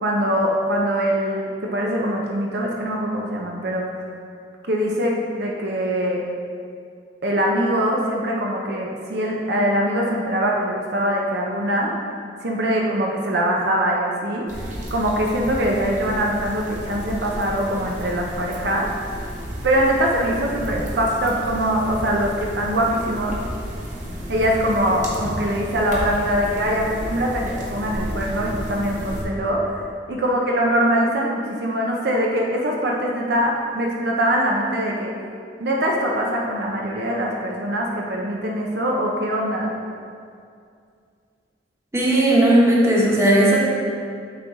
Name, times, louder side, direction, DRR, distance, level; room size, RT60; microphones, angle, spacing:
voice 1, 0.0-3.9 4.7-6.2 7.2-11.9 12.4-18.9 19.6-23.4 24.3-29.8 30.1-35.1 35.6-39.7, equal, 65° right, -1 dB, 0.7 m, -23 dB
sound 1, 14.5-29.2, equal, 45° right, 1.2 m, -32 dB
voice 2, 41.9-43.6, right 1 dB, 15° right, -5 dB, 1.2 m, -16 dB
8.8 x 3.8 x 4.0 m, 2.3 s
head